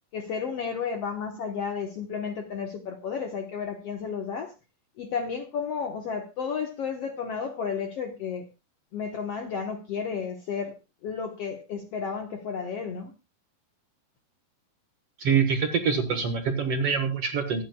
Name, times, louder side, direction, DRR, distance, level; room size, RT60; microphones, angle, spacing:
voice 1, 0.1-4.5 5.0-8.4 8.9-13.1, left 6 dB, 60° left, 1.7 m, -32 dB
voice 2, 15.2-17.6, right 6 dB, 55° right, 1.8 m, -25 dB
25.0 x 9.1 x 2.3 m
omnidirectional pair, 4.1 m